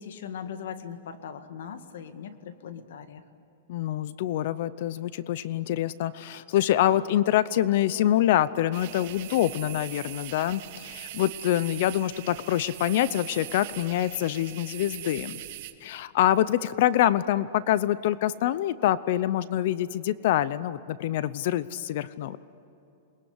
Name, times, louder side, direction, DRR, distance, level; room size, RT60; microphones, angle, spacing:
voice 1, 0.0-3.2, left 7 dB, 75° left, 9 dB, 2.0 m, -39 dB
voice 2, 3.7-15.4 15.8-22.4, left 12 dB, 50° left, 17 dB, 0.7 m, -25 dB
sound 1, 8.7-15.7, right 15 dB, 50° right, 1.5 m, -41 dB
28.0 x 20.5 x 9.8 m, 2.9 s
supercardioid pair, 165°, 0 cm